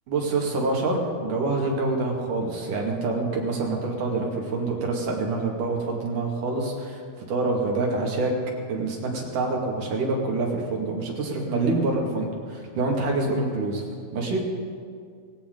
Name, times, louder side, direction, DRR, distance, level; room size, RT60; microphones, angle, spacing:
voice 1, 0.1-7.0 7.3-8.3 8.7-13.8 14.1-14.4, right 3 dB, 55° right, -1 dB, 3.4 m, -26 dB
19.5 x 17.0 x 3.9 m, 2.1 s
omnidirectional pair, 4.6 m